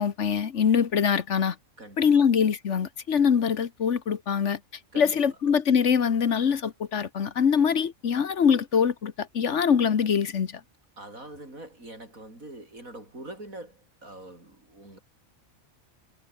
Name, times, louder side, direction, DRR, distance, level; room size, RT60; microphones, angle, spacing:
voice 1, 0.0-1.6 2.0-4.6 5.0-10.6, left 7 dB, 60° left, 1.5 m, -23 dB
voice 2, 1.8-2.3 4.9-5.2 11.0-15.0, right 1 dB, 85° right, 8.4 m, -44 dB
omnidirectional pair, 1.4 m